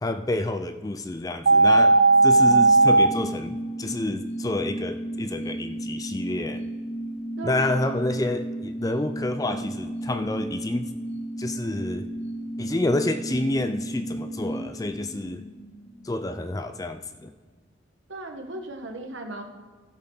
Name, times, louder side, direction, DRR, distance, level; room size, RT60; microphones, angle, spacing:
voice 1, 0.0-2.0 2.2-6.7 7.4-10.9 11.4-12.1 12.6-15.4 16.0-17.3, left 2 dB, 20° left, 10 dB, 0.4 m, -28 dB
sound 1, 1.5-3.1, right 3 dB, 60° right, 0.4 m, -16 dB
sound 2, 1.7-16.7 17.0-17.1, right 1 dB, 55° left, 3.6 m, -34 dB
voice 2, 7.4-7.9 18.1-19.4, right 2 dB, 75° right, 4 dB, 1.4 m, -37 dB
16.0 x 7.2 x 3.9 m, 1.5 s
head